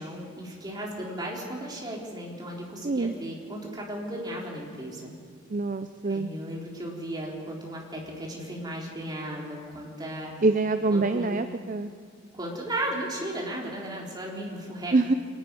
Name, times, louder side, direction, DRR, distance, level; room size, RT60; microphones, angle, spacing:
voice 1, 0.0-5.1 6.1-10.3 10.9-11.3 12.3-14.9, right 1 dB, 20° right, -2 dB, 3.8 m, -35 dB
voice 2, 2.8-3.1 5.5-6.3 10.4-11.9 14.9-15.1, right 3 dB, 40° right, 9 dB, 0.6 m, -25 dB
25.0 x 10.5 x 9.8 m, 2.1 s
head